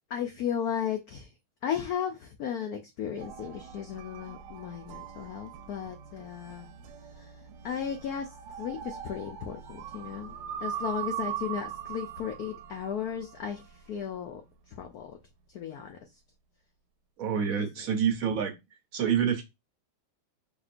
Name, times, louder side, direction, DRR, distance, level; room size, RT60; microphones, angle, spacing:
voice 1, 0.1-1.3 1.6-6.7 7.2-7.3 7.6-8.3 8.6-10.3 10.6-13.6 13.9-14.4 14.7-15.2 15.5-16.0 17.5-17.7, left 8 dB, 80° left, 0.8 m, -35 dB
sound 1, 3.2-14.2, right 9 dB, 90° right, 1.5 m, -41 dB
voice 2, 17.2-18.5 18.9-19.4, right 8 dB, 60° right, 0.9 m, -27 dB
5.0 x 3.6 x 2.5 m
omnidirectional pair, 2.3 m